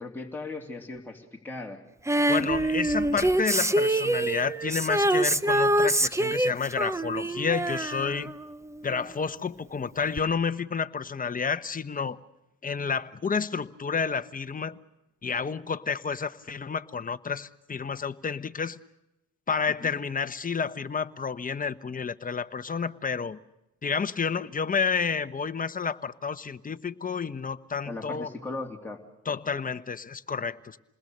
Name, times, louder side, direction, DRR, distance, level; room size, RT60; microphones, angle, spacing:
voice 1, 0.0-1.8 19.8-19.9 27.8-29.0, left 2 dB, 5° left, 3.3 m, -37 dB
Female singing, 2.1-9.0 10.2-10.3, right 1 dB, 10° right, 0.8 m, -25 dB
voice 2, 2.3-8.3 8.8-12.2 12.6-14.8 15.2-18.8 19.5-23.4 23.8-28.3 29.3-30.8, left 5 dB, 30° left, 1.1 m, -30 dB
28.0 x 20.5 x 6.7 m
cardioid pair, 90°, 30 cm